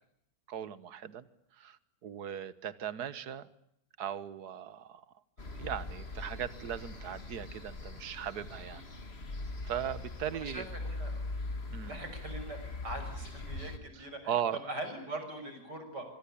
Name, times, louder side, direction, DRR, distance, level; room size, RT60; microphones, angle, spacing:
voice 1, 0.5-1.2 1.6-3.5 4.0-5.0 5.6-8.8 9.6-10.7 11.7-12.0 13.9-14.6, right 9 dB, 70° right, 15 dB, 1.8 m, -38 dB
sound 1, 5.4-13.8, left 2 dB, 40° left, 2.4 m, -41 dB
voice 2, 10.3-11.2 11.8-14.3 14.6-16.1, right 1 dB, 85° right, 7 dB, 6.9 m, -42 dB
25.5 x 24.5 x 8.5 m, 0.74 s
omnidirectional pair, 1.8 m